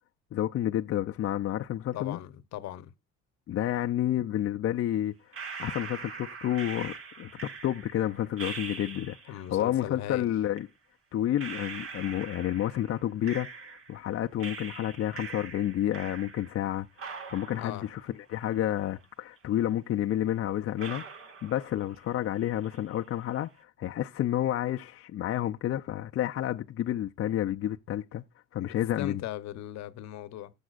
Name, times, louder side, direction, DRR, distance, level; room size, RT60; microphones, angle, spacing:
voice 1, 0.3-2.2 3.5-7.3 7.6-10.7 11.1-16.9 17.3-21.0 21.4-28.2 28.5-29.2, left 12 dB, 50° left, 0.6 m, -30 dB
voice 2, 1.9-2.9 9.3-10.3 17.6-17.8 28.6-30.5, left 12 dB, 70° left, 1.0 m, -39 dB
sound 1, 5.3-9.5 10.5-10.6 11.4-14.1 14.4-16.7 17.0-19.0 19.4-19.5 20.1-20.2 20.8-22.1 22.4-22.9, right 5 dB, 50° right, 1.8 m, -43 dB
18.0 x 7.1 x 2.5 m
supercardioid pair, 85°, 29 cm